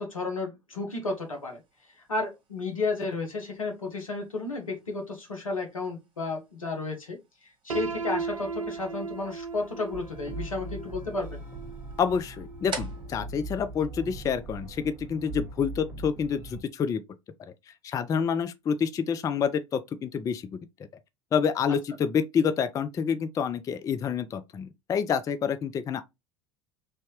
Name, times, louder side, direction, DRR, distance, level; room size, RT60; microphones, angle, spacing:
voice 1, 0.0-1.6 2.1-11.4, left 3 dB, 80° left, 1.0 m, -32 dB
sound 1, 1.0-14.6, right 3 dB, 30° right, 1.3 m, -49 dB
Piano, 7.7-13.5, right 5 dB, 80° right, 0.4 m, -37 dB
sound 2, 9.9-16.6, right 1 dB, 10° right, 1.4 m, -40 dB
voice 2, 12.0-17.0 17.8-20.6 21.3-26.0, left 7 dB, 20° left, 0.3 m, -28 dB
3.2 x 2.7 x 3.0 m
figure-of-eight pair, 75°, 17 cm